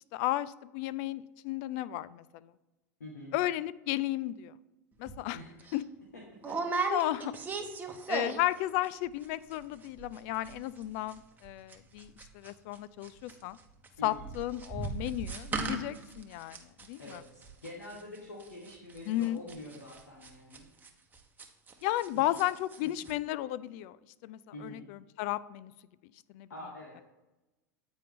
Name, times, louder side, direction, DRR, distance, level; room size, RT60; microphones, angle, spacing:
voice 1, 0.1-2.2 3.3-4.5 5.0-5.4 5.7-5.8 6.7-7.3 8.1-13.6 14.0-16.6 16.9-17.2 19.1-19.4 21.8-24.0 24.2-25.7 26.3-26.5, left 15 dB, 55° left, 18 dB, 0.3 m, -33 dB
voice 2, 3.0-3.3 5.3-5.6 6.1-6.6 14.0-14.3 17.0-20.7 22.1-22.4 24.5-24.9 26.5-27.0, left 1 dB, 90° left, -1 dB, 1.3 m, -46 dB
sound 1, 5.1-5.2 5.6-5.8 6.4-8.6 8.8-9.3 9.5-9.6 9.8-10.2 10.4-12.8 13.0-22.1 22.3-22.8 23.0-23.1, right 4 dB, 20° right, 0.9 m, -37 dB
8.8 x 4.3 x 3.5 m, 1.0 s
hypercardioid pair, 95°, 9 cm